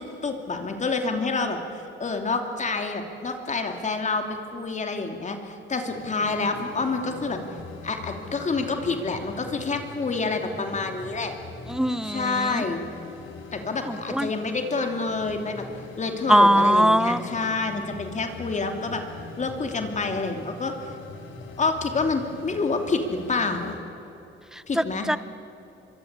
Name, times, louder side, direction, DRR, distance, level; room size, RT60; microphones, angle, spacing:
voice 1, 0.0-7.4 7.8-11.3 12.0-12.8 13.5-15.6 16.0-19.0 19.4-20.9 21.6-23.8 24.7-25.1, left 3 dB, 35° left, 5 dB, 2.9 m, -28 dB
sound 1, 5.9-23.8, left 4 dB, 80° left, 3.7 m, -42 dB
voice 2, 11.7-12.6 13.9-14.3 16.3-17.2 24.5-25.2, equal, 5° right, 15 dB, 0.8 m, -21 dB
24.5 x 23.0 x 8.3 m, 2.9 s
cardioid pair, 90°, 20 cm